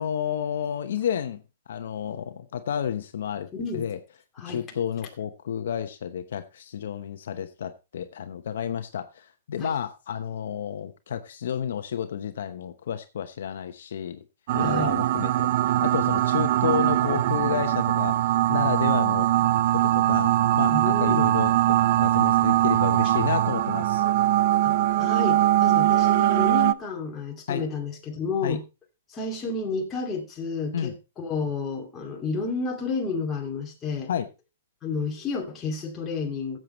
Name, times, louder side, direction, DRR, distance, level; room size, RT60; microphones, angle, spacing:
voice 1, 0.0-1.4 1.7-3.5 3.7-4.0 4.5-14.2 14.5-19.3 19.7-21.5 22.0-24.0 27.5-27.6 28.4-28.6 30.7-30.9 34.1-34.3, left 8 dB, 70° left, 0.9 m, -31 dB
voice 2, 3.5-3.9 4.4-4.6 9.6-9.7 14.6-14.9 20.7-21.3 24.6-28.6 29.1-34.1 34.8-36.6, left 4 dB, 15° left, 2.3 m, -31 dB
sound 1, 14.5-26.7, right 14 dB, 50° right, 0.5 m, -22 dB
15.5 x 7.6 x 3.1 m
hypercardioid pair, 150°, 0 cm